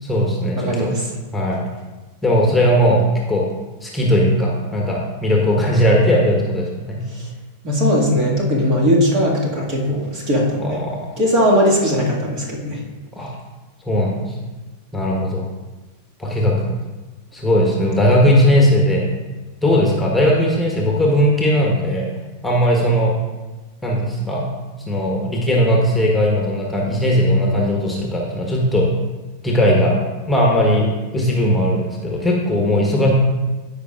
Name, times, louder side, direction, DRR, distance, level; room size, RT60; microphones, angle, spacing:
voice 1, 0.0-0.9 1.3-1.6 2.2-3.0 3.3-3.5 3.8-7.0 10.6-11.1 13.1-13.3 13.8-14.3 14.9-15.4 16.2-16.5 17.3-19.1 19.6-22.1 22.4-23.1 23.8-24.5 24.9-28.9 29.4-30.0 30.3-33.1, equal, 5° left, -2 dB, 1.4 m, -18 dB
voice 2, 0.6-1.0 7.1-7.2 7.6-10.8 11.2-12.8, equal, 40° right, -2 dB, 2.0 m, -18 dB
13.5 x 5.5 x 2.5 m, 1.2 s
figure-of-eight pair, 90°, 0 cm